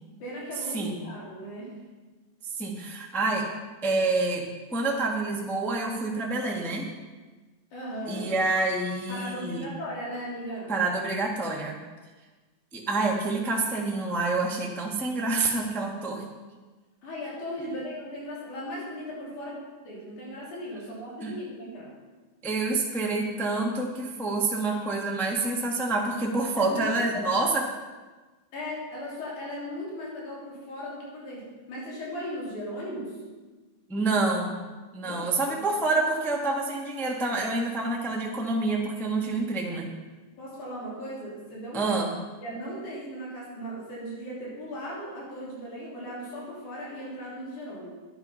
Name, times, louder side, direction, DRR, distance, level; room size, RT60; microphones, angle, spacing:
voice 1, 0.1-1.8 7.7-8.3 9.1-10.7 17.0-19.5 19.8-21.9 26.7-27.3 28.5-33.2 35.0-35.6 40.4-42.0 42.4-47.9, equal, 85° left, -4 dB, 4.8 m, -37 dB
voice 2, 2.5-3.5 3.8-6.9 8.1-9.7 10.7-11.8 12.7-16.2 17.6-17.8 19.3-19.6 21.2-21.4 22.4-27.6 33.9-34.6 34.9-39.9 41.7-42.1, right 3 dB, 5° left, -1 dB, 0.4 m, -27 dB
10.5 x 10.5 x 5.6 m, 1.3 s
omnidirectional pair, 3.4 m